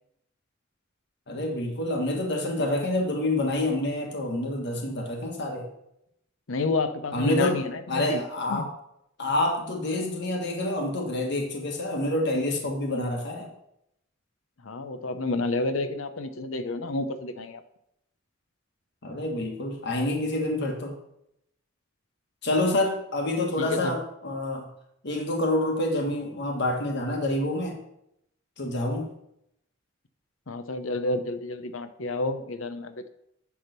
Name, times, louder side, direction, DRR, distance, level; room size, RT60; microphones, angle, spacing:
voice 1, 1.3-5.7 7.1-7.6 7.9-8.7 9.2-13.5 19.0-20.9 22.4-24.7 25.0-27.8 28.6-29.1, left 1 dB, 60° left, 1 dB, 1.5 m, -27 dB
voice 2, 6.5-8.2 8.5-8.7 14.6-17.6 23.6-24.0 30.5-33.1, left 2 dB, 85° left, 10 dB, 0.8 m, -30 dB
10.5 x 3.6 x 6.6 m, 0.78 s
head